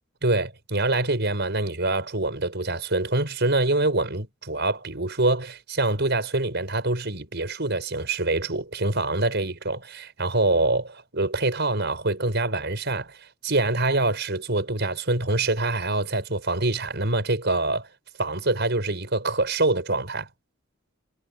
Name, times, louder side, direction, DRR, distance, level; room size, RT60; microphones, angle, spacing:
voice 1, 0.2-13.2 13.4-17.9 18.2-20.3, right 2 dB, 60° right, 6.0 m, -25 dB
head